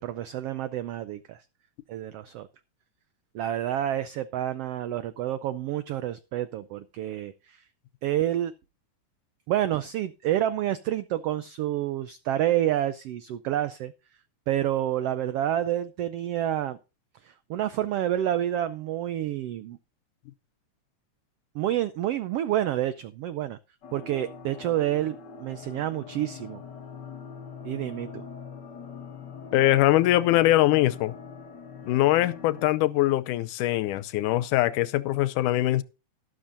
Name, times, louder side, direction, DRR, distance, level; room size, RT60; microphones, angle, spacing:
voice 1, 0.0-1.4 1.9-2.5 3.3-7.6 8.0-8.5 9.5-13.9 14.5-16.8 17.2-19.8 21.5-23.6 23.9-26.6 27.6-28.1, right 12 dB, 90° right, 1.3 m, -28 dB
sound 1, 23.8-32.7, left 6 dB, 50° left, 1.3 m, -42 dB
voice 2, 29.5-31.1 31.8-35.8, left 15 dB, 85° left, 2.2 m, -22 dB
12.5 x 12.5 x 2.6 m
omnidirectional pair, 3.5 m